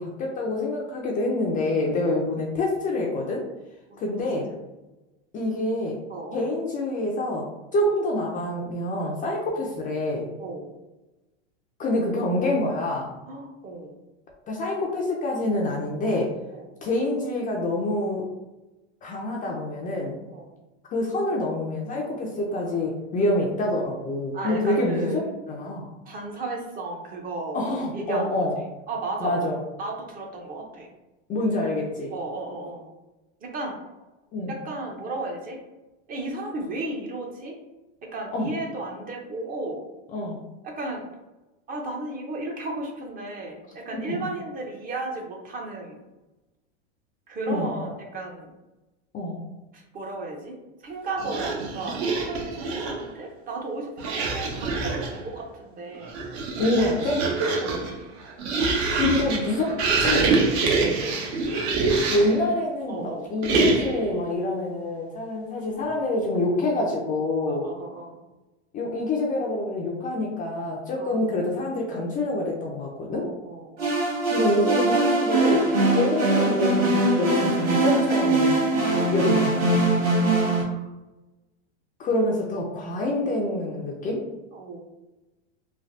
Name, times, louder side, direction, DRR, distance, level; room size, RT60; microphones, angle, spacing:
voice 1, 0.0-3.4 4.0-4.4 5.3-6.0 6.3-7.5 7.7-10.3 11.8-13.1 14.5-16.3 16.8-18.3 19.0-20.2 20.9-25.1 25.5-25.9 27.5-28.6 29.2-29.6 31.3-32.1 34.3-34.5 38.3-38.5 40.1-40.4 43.9-44.2 47.5-47.7 49.1-49.4 56.6-57.3 58.9-60.2 62.1-67.6 68.7-73.2 74.3-78.7 79.1-79.9 82.0-84.2, left 2 dB, 25° left, -2 dB, 0.4 m, -26 dB
voice 2, 6.1-6.5 10.4-10.7 13.3-13.9 16.5-16.7 20.3-20.5 24.3-25.3 26.0-29.4 29.8-30.9 32.1-32.9 33.4-33.8 34.5-35.6 36.1-37.6 38.0-39.8 40.6-41.1 41.7-46.0 47.3-48.5 49.7-50.6 50.8-56.2 57.6-58.0 61.9-62.1 62.9-63.3 67.5-68.2 71.0-71.2 73.1-74.0 80.3-80.9 84.5-84.8, right 2 dB, 25° right, 1 dB, 0.6 m, -34 dB
sound 1, 51.2-53.1 54.0-55.2 55.9-62.4 63.4-64.1, right 4 dB, 65° right, 0.7 m, -25 dB
sound 2, 73.8-80.6, right 2 dB, 45° right, 1.4 m, -22 dB
3.2 x 2.2 x 2.5 m, 1.0 s
hypercardioid pair, 115°, 35 cm